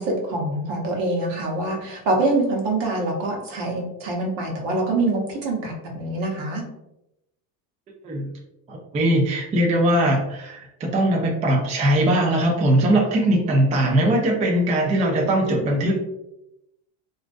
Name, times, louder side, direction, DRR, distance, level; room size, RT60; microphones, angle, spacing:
voice 1, 0.0-6.6, right 2 dB, 65° right, 0 dB, 0.9 m, -25 dB
voice 2, 8.7-15.9, right 1 dB, 20° right, 0 dB, 0.3 m, -20 dB
2.5 x 2.1 x 2.4 m, 0.86 s
supercardioid pair, 105°, 44 cm